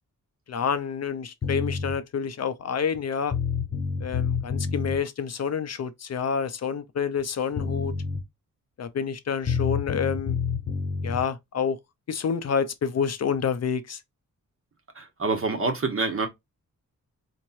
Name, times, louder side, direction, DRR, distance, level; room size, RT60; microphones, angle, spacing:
voice 1, 0.5-3.3 4.0-7.9 8.8-10.4 11.0-11.8 12.1-14.0, left 6 dB, 50° left, 0.5 m, -28 dB
sound 1, 1.4-1.9 3.0-3.1 3.3-5.0 7.2-7.3 7.6-8.2 9.5-11.2, left 6 dB, 35° left, 0.9 m, -28 dB
voice 2, 14.9-16.3, right 3 dB, 40° right, 1.2 m, -26 dB
4.4 x 3.1 x 2.6 m
wide cardioid pair, 150°, 32 cm